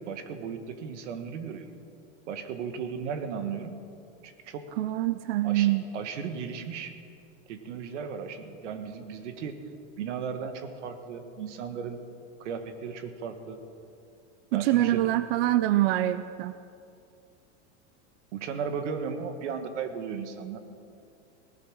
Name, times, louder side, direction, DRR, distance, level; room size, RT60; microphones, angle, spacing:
voice 1, 0.0-1.7 2.3-3.8 4.2-4.7 5.4-7.0 7.5-9.6 10.0-12.0 12.4-13.6 14.5-15.1 18.3-20.6, right 6 dB, 85° right, 8 dB, 1.7 m, -36 dB
voice 2, 4.8-5.8 14.5-16.5, right 15 dB, 55° right, 13 dB, 0.5 m, -25 dB
17.5 x 12.0 x 6.4 m, 2.5 s
supercardioid pair, 165°, 35 cm